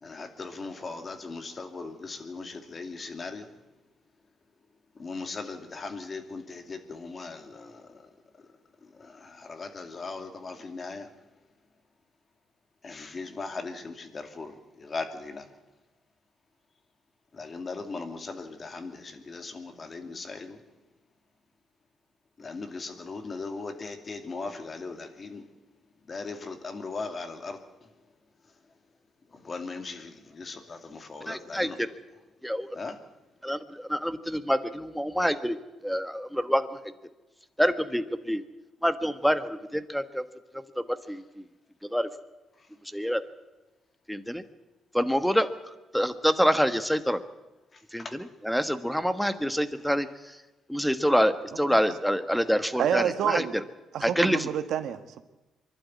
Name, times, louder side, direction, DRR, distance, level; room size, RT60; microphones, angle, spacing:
voice 1, 0.0-3.6 4.9-8.1 8.4-8.5 8.8-11.1 12.8-15.5 17.3-20.6 22.4-25.4 26.1-27.9 29.3-31.8 32.7-33.0 42.6-42.7 47.7-48.1, left 3 dB, 35° left, 2.5 m, -39 dB
voice 2, 31.3-31.9 32.4-32.7 33.4-35.6 35.8-36.7 37.6-38.4 38.8-40.2 40.5-40.6 40.9-41.4 41.9-42.1 42.9-43.2 44.1-44.4 44.9-45.5 45.9-47.2 47.9-50.1 50.7-53.4 54.0-54.5, equal, ahead, 1.4 m, -26 dB
voice 3, 52.8-53.5 53.9-55.2, right 9 dB, 75° right, 1.3 m, -28 dB
24.0 x 12.0 x 9.6 m
cardioid pair, 90°, 0 cm